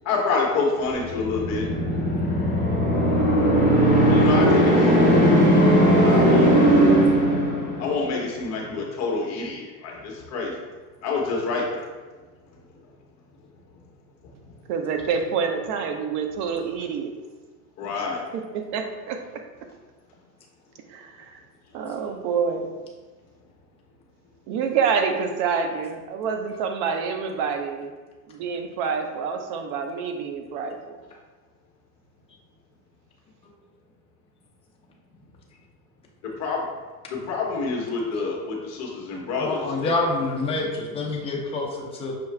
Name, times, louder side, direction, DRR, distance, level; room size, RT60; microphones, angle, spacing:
voice 1, 0.0-1.7 4.1-5.3 6.0-6.5 7.8-10.5 11.0-11.8 17.8-18.2 36.4-36.6 37.3-39.9, left 4 dB, 35° left, -1 dB, 1.0 m, -27 dB
sound 1, 1.1-8.0, equal, 15° right, 1.5 m, -18 dB
voice 2, 14.7-17.1 18.0-18.1 18.3-19.2 20.9-21.3 21.7-22.7 24.5-27.9 28.3-30.8, right 6 dB, 40° right, 5 dB, 0.4 m, -27 dB
voice 3, 39.4-42.1, left 2 dB, 15° left, -2 dB, 0.5 m, -27 dB
5.7 x 2.3 x 3.2 m, 1.3 s
supercardioid pair, 130°, 47 cm